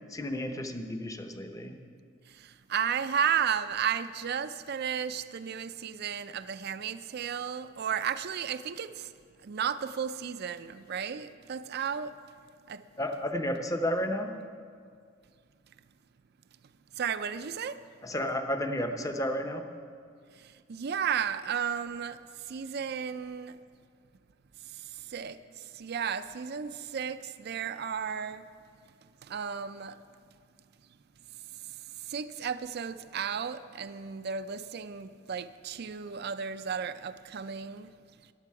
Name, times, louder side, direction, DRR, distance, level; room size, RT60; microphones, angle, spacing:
voice 1, 0.0-1.8 13.0-14.4 18.0-19.7, equal, 15° left, 0.8 m, -32 dB
voice 2, 2.3-9.1 9.4-12.1 12.7-12.8 17.0-17.8 20.4-22.2 22.4-23.6 24.7-28.4 29.2-30.0 32.0-37.9, right 7 dB, 55° right, 0.4 m, -33 dB
14.5 x 11.0 x 4.7 m
head